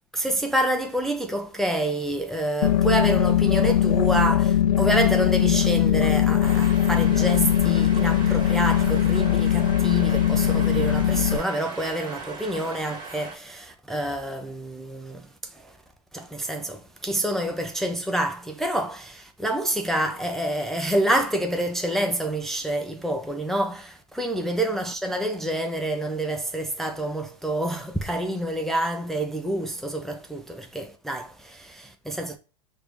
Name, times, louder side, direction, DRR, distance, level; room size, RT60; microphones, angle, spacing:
voice 1, 0.1-15.8 16.1-32.4, right 1 dB, ahead, 0.4 m, -27 dB
sound 1, 2.6-11.4, left 10 dB, 75° left, 0.5 m, -20 dB
sound 2, 6.4-13.3, right 4 dB, 20° right, 1.5 m, -39 dB
4.4 x 2.6 x 3.3 m
hypercardioid pair, 105°, 20 cm